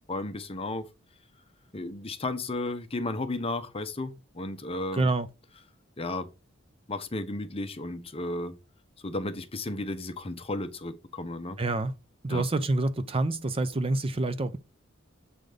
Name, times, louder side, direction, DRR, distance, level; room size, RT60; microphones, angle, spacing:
voice 1, 0.1-0.9 1.7-5.1 6.0-6.3 6.9-8.5 9.0-11.6 12.3-12.5, left 2 dB, 30° left, 0.9 m, -34 dB
voice 2, 4.9-5.3 11.6-11.9 12.2-14.6, right 2 dB, 30° right, 0.6 m, -27 dB
7.7 x 3.9 x 5.1 m
head